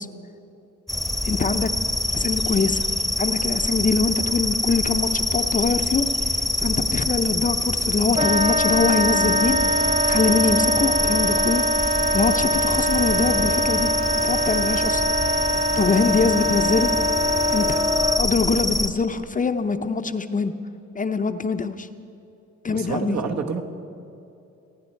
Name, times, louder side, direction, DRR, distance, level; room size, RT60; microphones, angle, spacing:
sound 1, 0.9-18.9, left 2 dB, ahead, 0.9 m, -25 dB
voice 1, 1.2-1.7 2.1-2.9 3.2-13.9 14.2-15.0 15.8-16.9 17.5-17.8 18.2-20.5 20.9-21.9 22.6-23.2, left 4 dB, 25° left, 8 dB, 0.6 m, -24 dB
Wind instrument woodwind instrument, 8.1-18.3, equal, 20° right, 0.6 m, -23 dB
voice 2, 22.7-23.6, right 5 dB, 65° right, 3 dB, 1.5 m, -27 dB
26.5 x 9.8 x 4.5 m, 2.8 s
cardioid pair, 90°, 30 cm